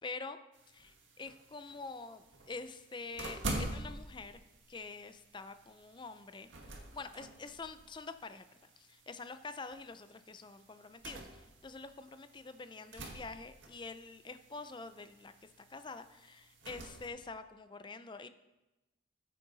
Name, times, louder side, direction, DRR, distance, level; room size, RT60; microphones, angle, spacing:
voice 1, 0.0-0.4 1.2-4.4 4.7-6.5 6.9-18.3, left 4 dB, 25° left, 11 dB, 0.5 m, -46 dB
sound 1, 0.5-17.1, right 2 dB, 80° right, 1.6 m, -47 dB
14.0 x 8.5 x 4.0 m, 1.0 s
head